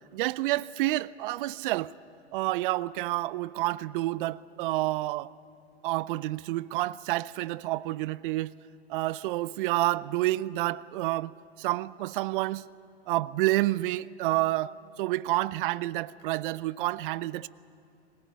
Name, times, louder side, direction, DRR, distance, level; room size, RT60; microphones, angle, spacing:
voice 1, 0.1-1.9 2.3-5.3 5.8-8.5 8.9-12.7 13.1-17.5, right 17 dB, 50° right, 0.6 m, -29 dB
21.0 x 18.5 x 9.5 m
hypercardioid pair, 110°, 33 cm